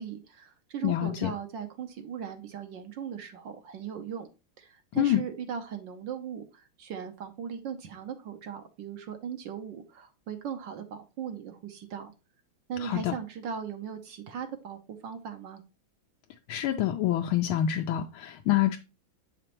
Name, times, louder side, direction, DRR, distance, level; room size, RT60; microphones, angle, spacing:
voice 1, 0.0-4.3 4.6-12.1 12.7-15.6, right 8 dB, 70° right, 1.4 m, -38 dB
voice 2, 0.8-1.3 4.9-5.2 12.8-13.1 16.5-18.8, left 12 dB, 85° left, 1.4 m, -26 dB
7.7 x 5.1 x 2.9 m
omnidirectional pair, 2.3 m